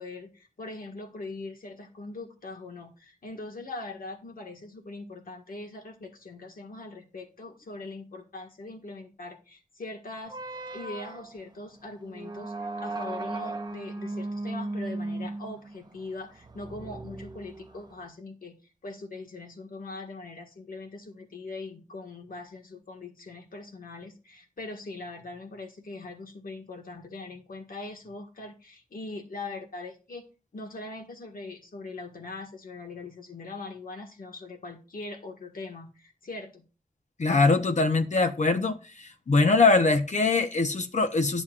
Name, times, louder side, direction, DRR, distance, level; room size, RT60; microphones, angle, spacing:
voice 1, 0.0-10.4 10.7-30.2 30.5-36.6, left 2 dB, 80° left, 1.6 m, -41 dB
sound 1, 10.3-18.1, right 2 dB, 30° right, 0.7 m, -37 dB
voice 2, 37.2-38.8 39.3-41.4, left 3 dB, 55° left, 0.7 m, -22 dB
11.0 x 7.1 x 2.4 m
wide cardioid pair, 60°, 15 cm